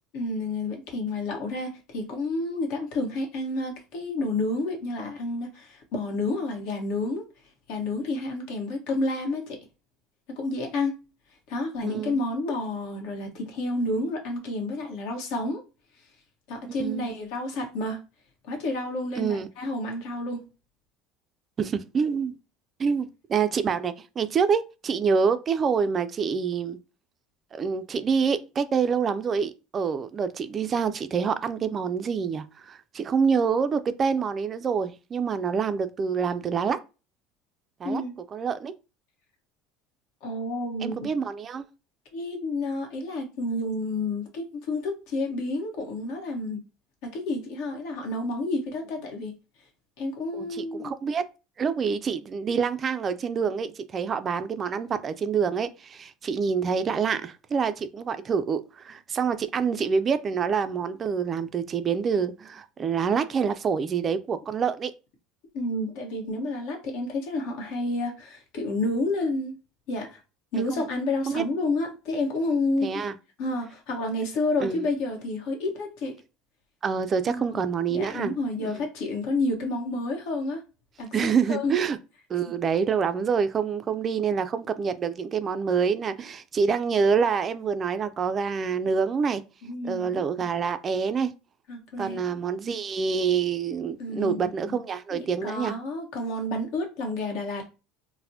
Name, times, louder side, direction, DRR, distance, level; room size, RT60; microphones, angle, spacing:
voice 1, 0.1-7.2 7.7-9.6 10.3-11.0 11.5-15.6 16.5-18.0 18.5-20.5 37.8-38.1 40.2-41.1 42.1-46.6 47.0-49.3 50.0-50.9 65.5-69.5 69.9-70.2 70.5-73.0 73.4-76.1 77.3-77.6 77.9-80.6 81.0-81.7 89.6-90.2 91.7-92.2 94.0-94.8 95.1-97.7, left 2 dB, 70° left, 1.1 m, -30 dB
voice 2, 11.8-12.2 16.8-17.1 19.2-19.5 21.6-22.3 22.8-26.8 27.5-36.8 37.8-38.0 38.3-38.7 40.8-41.7 50.3-51.2 51.6-64.9 70.5-70.8 71.3-71.4 72.8-73.1 74.6-74.9 76.8-78.3 78.6-78.8 81.1-82.0 82.3-89.4 89.8-91.3 92.0-95.8, right 6 dB, 30° right, 0.3 m, -26 dB
4.0 x 2.1 x 2.7 m
cardioid pair, 130°, 0 cm